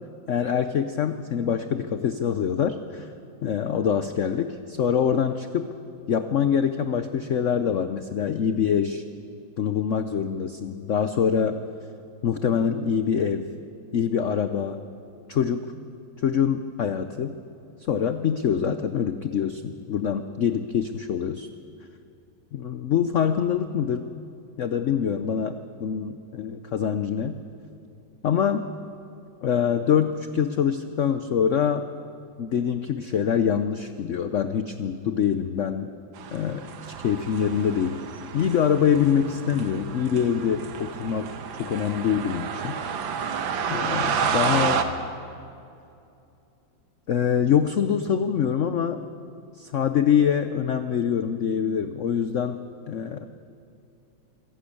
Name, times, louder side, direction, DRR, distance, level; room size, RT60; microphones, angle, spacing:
voice 1, 0.3-3.1 3.4-5.7 6.1-9.0 9.6-11.6 12.2-13.5 13.9-14.8 15.3-15.7 16.2-17.4 17.8-21.5 22.5-24.2 24.6-27.4 28.2-28.7 29.4-31.8 32.4-35.9 36.3-38.0 38.3-41.3 41.5-42.8 43.7-44.9 47.1-49.0 49.6-53.3, left 8 dB, 70° left, 9 dB, 0.7 m, -25 dB
sound 1, 36.2-44.8, right 6 dB, 80° right, 1.9 m, -30 dB
26.5 x 12.0 x 8.6 m, 2.6 s
omnidirectional pair, 2.1 m